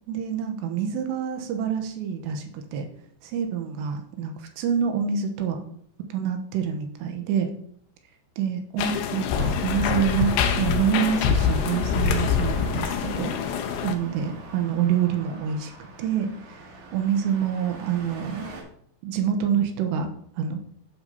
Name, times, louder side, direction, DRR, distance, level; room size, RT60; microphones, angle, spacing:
voice 1, 0.1-2.9 3.2-5.6 6.1-7.5 8.4-15.7 16.0-16.6 16.9-18.5 19.0-20.1 20.4-20.6, right 8 dB, 80° right, 5 dB, 2.9 m, -27 dB
sound 1, 8.8-13.9, left 7 dB, 90° left, 2.1 m, -25 dB
Traffic noise roadway noise, 9.4-18.6, right 3 dB, 65° right, 2.1 m, -43 dB
11.0 x 6.2 x 2.7 m, 0.64 s
omnidirectional pair, 5.2 m